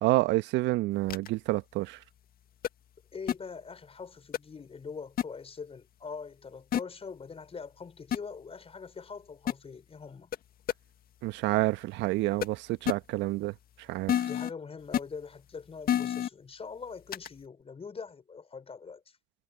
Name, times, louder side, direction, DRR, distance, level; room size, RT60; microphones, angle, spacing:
voice 1, 0.0-2.0 11.2-13.6 13.9-14.3, right 19 dB, 60° right, 1.7 m, -28 dB
sound 1, 1.1-1.3 2.6-2.7 3.3-3.4 4.3-4.4 5.2-5.3 6.7-6.8 8.1-8.2 9.5-9.6 10.3-10.4 10.7-10.8 12.4-12.5 12.9-13.0 14.1-14.5 14.9-15.0 15.9-16.3 17.1-17.3, left 10 dB, 45° left, 1.9 m, -27 dB
voice 2, 3.1-10.3 14.2-19.2, left 5 dB, 30° left, 4.5 m, -43 dB
hypercardioid pair, 65°, 20 cm